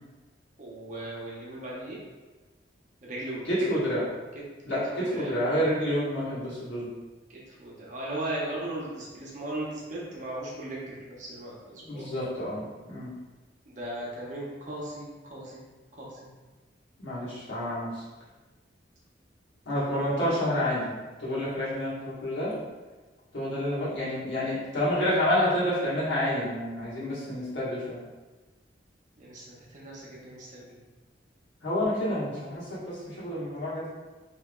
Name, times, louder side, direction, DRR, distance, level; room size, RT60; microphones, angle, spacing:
voice 1, 0.6-2.0 3.1-3.9 4.7-5.4 7.5-12.1 13.6-15.6 15.9-16.3 29.2-30.8, right 1 dB, 45° right, -5 dB, 0.8 m, -37 dB
voice 2, 3.4-4.0 4.6-7.0 11.8-13.1 17.0-17.9 19.6-22.5 23.3-28.0 31.6-33.9, left 1 dB, 80° left, -10 dB, 1.4 m, -29 dB
3.3 x 2.9 x 2.3 m, 1.2 s
head